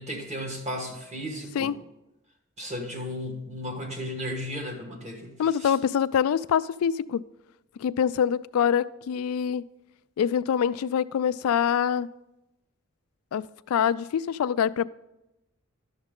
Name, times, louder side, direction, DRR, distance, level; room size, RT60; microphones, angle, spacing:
voice 1, 0.0-1.7 2.6-5.7, equal, 30° right, 2 dB, 1.4 m, -35 dB
voice 2, 5.4-7.2 7.8-9.6 10.2-12.1 13.3-14.9, left 8 dB, 80° left, 18 dB, 0.3 m, -25 dB
11.0 x 7.1 x 3.7 m, 0.92 s
head